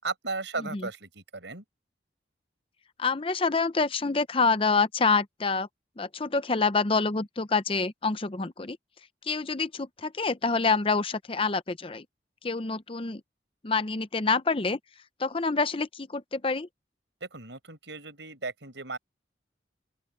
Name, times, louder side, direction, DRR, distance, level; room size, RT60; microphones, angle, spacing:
voice 1, 0.0-1.6 17.2-19.0, right 3 dB, 90° right, 5.5 m, -36 dB
voice 2, 3.0-5.7 6.0-8.8 9.3-12.0 12.4-13.2 13.6-14.8 15.2-16.7, left 4 dB, 30° left, 0.7 m, -27 dB
open air
head